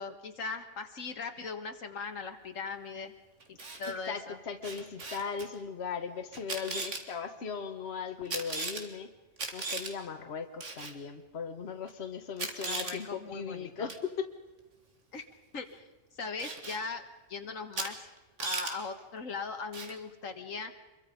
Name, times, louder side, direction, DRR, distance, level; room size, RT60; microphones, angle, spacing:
voice 1, 0.0-3.1 3.5-4.4 12.7-13.9 15.1-15.2 15.5-15.8 16.1-17.0 17.3-18.1 18.4-20.7, left 4 dB, 85° left, 6 dB, 2.0 m, -39 dB
Camera, 3.4-3.9 4.6-5.5 6.3-7.0 8.3-8.8 9.4-9.9 10.6-10.9 11.9-12.0 12.4-13.0 13.9-14.1 16.4-16.8 17.7-17.9 18.2-18.7 19.7-20.0, right 3 dB, 70° right, 2.3 m, -37 dB
voice 2, 4.1-9.1 9.5-14.3, left 6 dB, 55° left, 6 dB, 1.6 m, -38 dB
26.5 x 22.5 x 5.2 m, 1.1 s
omnidirectional pair, 1.3 m